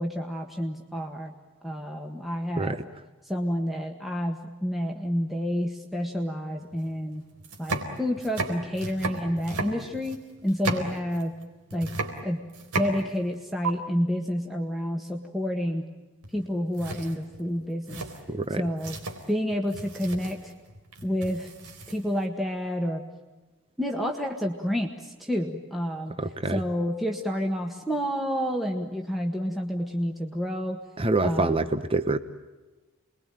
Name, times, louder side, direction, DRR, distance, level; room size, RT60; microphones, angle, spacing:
voice 1, 0.0-1.3 1.6-2.8 3.2-7.2 7.6-11.3 11.7-11.9 12.2-12.4 12.7-15.8 16.3-18.0 18.5-19.0 19.3-20.5 21.0-21.5 21.9-23.0 23.8-26.2 26.5-30.8 31.2-31.7, equal, ahead, 1 dB, 1.6 m, -29 dB
sound 1, 6.7-6.8 7.3-11.4 11.7-13.3 13.6-13.7 16.2-16.5 16.7-22.2, right 3 dB, 90° right, 4.0 m, -34 dB
voice 2, 18.3-18.6 26.2-26.6 31.0-32.2, right 2 dB, 25° right, 10 dB, 0.9 m, -26 dB
29.0 x 22.0 x 9.1 m, 1.2 s
head